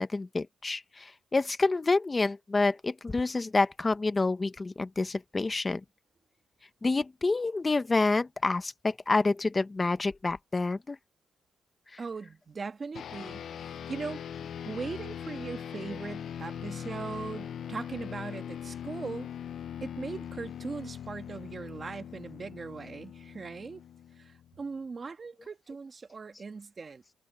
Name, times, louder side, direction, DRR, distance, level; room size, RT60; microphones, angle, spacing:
voice 1, 0.0-5.8 6.8-11.0 11.9-12.0 15.9-16.0, left 3 dB, 20° left, 1.0 m, -28 dB
voice 2, 12.0-14.2 14.7-19.3 19.8-23.8 24.2-27.1, right 4 dB, 30° right, 1.9 m, -39 dB
sound 1, 12.9-24.6, left 9 dB, 60° left, 0.7 m, -41 dB
cardioid pair, 120°, 0 cm